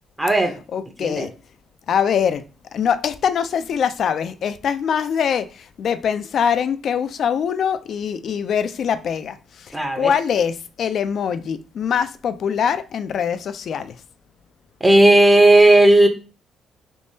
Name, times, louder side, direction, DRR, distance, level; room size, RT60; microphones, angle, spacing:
voice 1, 0.2-0.6 1.0-1.3 9.7-10.1 14.8-16.1, right 1 dB, 10° right, 0.6 m, -13 dB
voice 2, 0.7-1.3 1.9-2.4 2.7-14.0, left 7 dB, 60° left, 0.3 m, -23 dB
3.5 x 3.0 x 2.7 m
cardioid pair, 90°, 0 cm